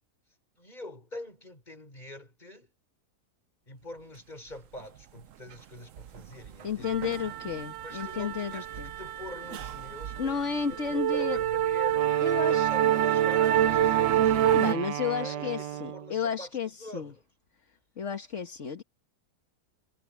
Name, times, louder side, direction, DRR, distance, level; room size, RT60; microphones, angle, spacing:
voice 1, 0.6-2.7 3.7-7.2 7.8-8.7 9.0-14.8 15.2-17.2, left 1 dB, 25° left, 5.7 m, -44 dB
sound 1, 6.0-6.2 6.4-14.7, right 11 dB, 60° right, 0.9 m, -27 dB
voice 2, 6.6-8.9 10.2-11.4 12.2-12.9 14.4-17.1 18.0-18.8, left 6 dB, 45° left, 1.7 m, -32 dB
Wind instrument woodwind instrument, 11.9-16.2, right 13 dB, 85° right, 1.3 m, -35 dB
omnidirectional pair, 1.8 m